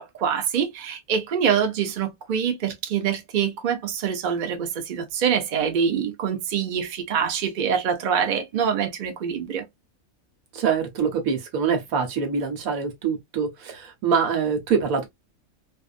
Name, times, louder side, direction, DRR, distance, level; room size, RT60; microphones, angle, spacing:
voice 1, 0.0-9.6, right 7 dB, 45° right, 0.7 m, -25 dB
voice 2, 10.5-15.1, right 6 dB, 90° right, 1.3 m, -24 dB
2.6 x 2.4 x 2.4 m
omnidirectional pair, 1.4 m